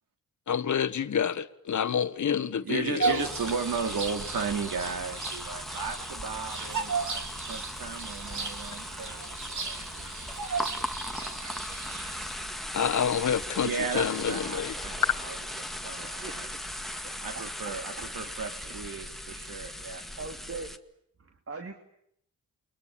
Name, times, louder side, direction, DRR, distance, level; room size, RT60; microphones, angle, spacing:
voice 1, 0.5-3.2 12.7-14.7, left 8 dB, 55° left, 1.4 m, -28 dB
voice 2, 2.4-7.2 7.5-10.3 13.6-16.5 17.1-20.0, right 5 dB, 75° right, 3.0 m, -35 dB
Bird vocalization bird call bird song, 3.0-12.6, right 4 dB, 55° right, 3.4 m, -35 dB
sound 1, 3.2-20.8, left 1 dB, ahead, 1.9 m, -38 dB
voice 3, 16.0-16.4 17.3-17.7 18.1-18.4 18.6-18.7 20.2-20.7 21.2-21.7, right 4 dB, 40° right, 2.9 m, -41 dB
29.0 x 22.0 x 8.9 m
cardioid pair, 85°, 35 cm